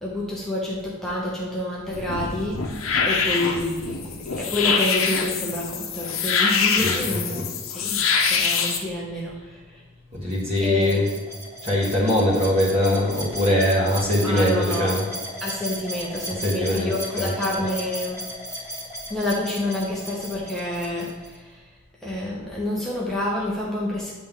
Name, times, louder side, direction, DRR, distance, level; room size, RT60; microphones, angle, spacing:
voice 1, 0.0-2.6 3.0-7.4 7.7-8.0 8.3-9.8 10.6-11.1 14.2-15.0 15.4-18.2 19.1-21.6 22.0-24.1, left 1 dB, ahead, -6 dB, 0.9 m, -28 dB
sound 1, 1.9-8.8, left 5 dB, 75° left, 0.8 m, -24 dB
voice 2, 6.7-7.4 10.1-11.1 11.6-15.1 16.3-17.4, left 1 dB, 30° right, -6 dB, 1.7 m, -22 dB
sound 2, 10.3-21.3, equal, 15° right, 1.4 m, -36 dB
9.4 x 3.4 x 3.7 m, 1.3 s
head